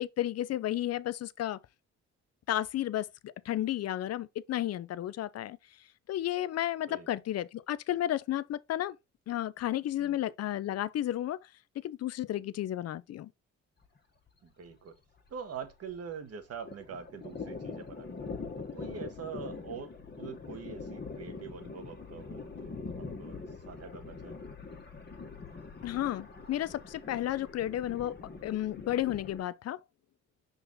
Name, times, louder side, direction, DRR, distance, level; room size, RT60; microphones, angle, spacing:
voice 1, 0.0-1.6 2.5-5.6 6.1-9.0 9.3-11.4 11.8-13.3 25.8-29.8, left 13 dB, 55° left, 0.6 m, -32 dB
Thunder, 13.8-14.0 14.3-14.4 14.7-16.2 16.4-29.4, left 4 dB, 35° left, 1.7 m, -43 dB
voice 2, 14.4-15.0 15.3-18.1 18.6-24.5, right 6 dB, 55° right, 1.5 m, -44 dB
5.7 x 4.1 x 4.0 m
cardioid pair, 90°, 30 cm